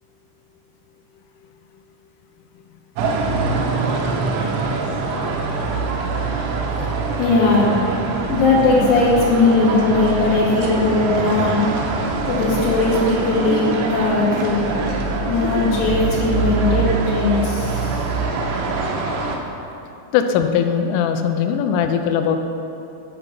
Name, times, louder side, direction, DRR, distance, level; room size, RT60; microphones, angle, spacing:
sound 1, 3.0-19.4, right 3 dB, 85° right, 3.5 m, -24 dB
voice 1, 7.2-11.7 12.3-14.6 15.3-18.1, left 3 dB, 65° left, -6 dB, 3.9 m, -19 dB
voice 2, 20.1-22.4, left 8 dB, 85° left, 6 dB, 3.1 m, -19 dB
11.0 x 5.2 x 7.0 m, 2.8 s
omnidirectional pair, 5.9 m